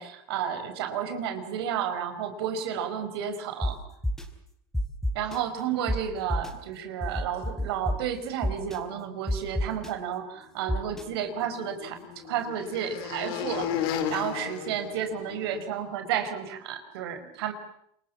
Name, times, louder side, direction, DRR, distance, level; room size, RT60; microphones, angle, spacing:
voice 1, 0.0-3.8 5.1-17.5, right 8 dB, 90° right, 8 dB, 5.0 m, -32 dB
sound 1, 3.6-3.7 4.0-4.2 4.7-5.4 5.9-6.0 6.3-6.5 7.0-8.0 8.4-8.8 9.3-9.9 10.7-11.0, left 1 dB, 5° left, 4.5 m, -27 dB
sound 2, 11.0-15.6, left 9 dB, 80° left, 5.2 m, -34 dB
27.5 x 23.5 x 7.3 m, 0.72 s
supercardioid pair, 125°, 12 cm